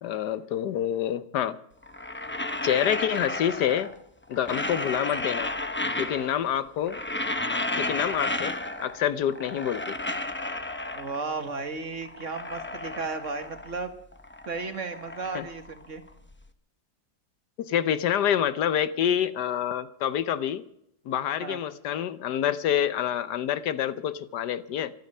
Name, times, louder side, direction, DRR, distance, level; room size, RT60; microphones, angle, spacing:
voice 1, 0.0-1.6 2.6-3.9 4.3-5.5 6.0-7.0 7.5-8.5 8.8-10.0 15.3-15.5 17.6-20.6 21.1-24.9, left 10 dB, 80° left, 14 dB, 1.4 m, -27 dB
sound 1, 1.8-4.0 4.3-6.5 6.8-9.0 9.3-11.4 11.8-13.8 14.1-16.3, left 2 dB, 10° left, 0.5 m, -33 dB
voice 2, 10.9-14.0 14.5-16.0 21.4-21.6, right 4 dB, 50° right, 7 dB, 1.8 m, -34 dB
25.0 x 9.4 x 5.5 m, 0.76 s
omnidirectional pair, 1.8 m